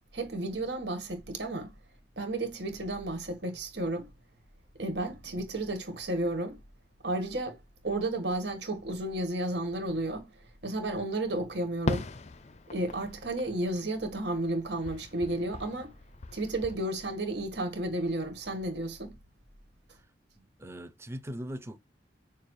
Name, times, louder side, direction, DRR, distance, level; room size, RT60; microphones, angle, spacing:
voice 1, 0.1-1.7 2.1-4.1 4.8-6.6 7.0-7.6 7.8-10.3 10.6-12.1 12.7-15.9 16.3-19.1, right 1 dB, 70° right, 1.7 m, -32 dB
Fireworks, 11.9-14.5 14.8-16.7, left 2 dB, 40° left, 0.5 m, -38 dB
voice 2, 20.4-21.8, equal, 15° right, 0.5 m, -41 dB
6.9 x 2.4 x 3.2 m
head